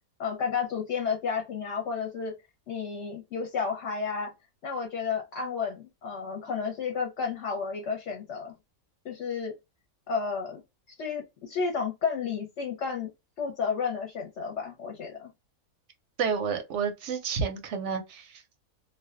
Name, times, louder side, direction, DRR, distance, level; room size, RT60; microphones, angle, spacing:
voice 1, 0.2-2.3 2.7-4.3 4.6-8.5 9.0-9.5 10.1-10.6 11.0-13.1 13.4-15.3, left 5 dB, 60° left, 0.9 m, -32 dB
voice 2, 16.2-18.4, right 6 dB, 65° right, 0.7 m, -30 dB
2.5 x 2.2 x 2.3 m
omnidirectional pair, 1.6 m